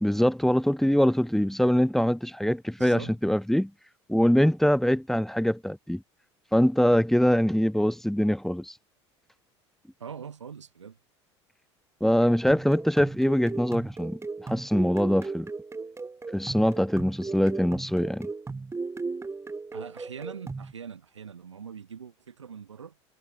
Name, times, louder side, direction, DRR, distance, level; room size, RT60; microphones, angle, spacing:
voice 1, 0.0-3.7 4.1-6.0 6.5-8.7 12.0-15.5 16.3-18.3, equal, ahead, 4.3 m, -23 dB
voice 2, 2.8-3.2 10.0-11.0 19.7-23.0, right 7 dB, 90° right, 7.8 m, -42 dB
sound 1, 12.2-20.7, right 4 dB, 20° right, 6.1 m, -36 dB
hypercardioid pair, 75°, 15 cm